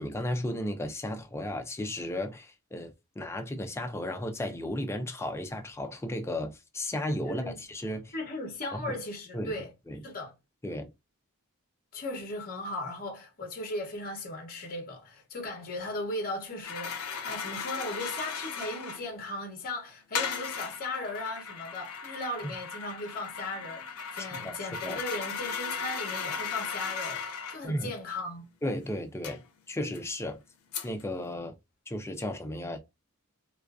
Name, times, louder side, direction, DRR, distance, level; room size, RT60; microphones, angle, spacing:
voice 1, 0.0-8.1 8.7-9.0 9.3-9.5 9.9-10.0 10.6-10.9 24.2-24.6 24.8-25.0 27.6-27.9 28.6-29.4 29.7-30.4 30.8-31.5 31.9-32.8, left 1 dB, 10° left, 0.4 m, -34 dB
voice 2, 7.3-7.6 8.1-9.7 10.0-10.3 11.9-28.4, left 2 dB, 40° left, 0.7 m, -37 dB
sound 1, 16.6-19.1 20.1-27.6 29.2-29.4 29.9-30.0 30.7-31.0, left 6 dB, 85° left, 0.5 m, -36 dB
2.4 x 2.3 x 2.3 m
head